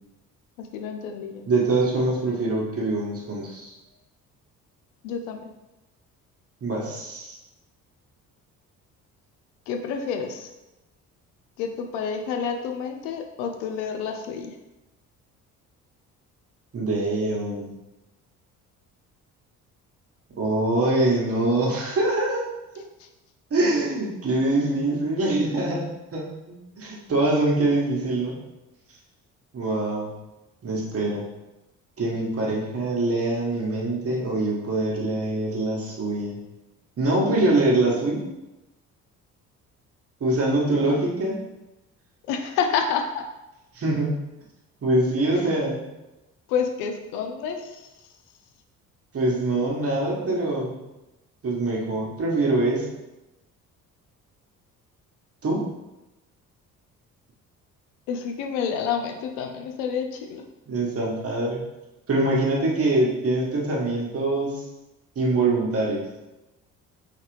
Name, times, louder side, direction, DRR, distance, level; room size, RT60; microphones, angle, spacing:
voice 1, 0.6-1.4 5.0-5.4 9.7-10.5 11.6-14.6 23.0-23.1 37.3-37.5 42.3-43.2 46.5-47.9 58.1-60.4, left 6 dB, 60° left, 5 dB, 0.6 m, -29 dB
voice 2, 1.5-3.7 6.6-7.4 16.7-17.7 20.4-22.4 23.5-28.4 29.5-30.1 30.6-31.2 32.0-36.4 37.0-38.3 40.2-41.4 43.7-44.1 44.8-45.8 49.1-50.8 51.4-52.9 55.4-55.6 60.7-61.6 62.1-64.6 65.1-66.0, right 2 dB, 30° right, -3 dB, 1.4 m, -24 dB
4.1 x 3.9 x 3.1 m, 0.98 s
figure-of-eight pair, 50°, 44 cm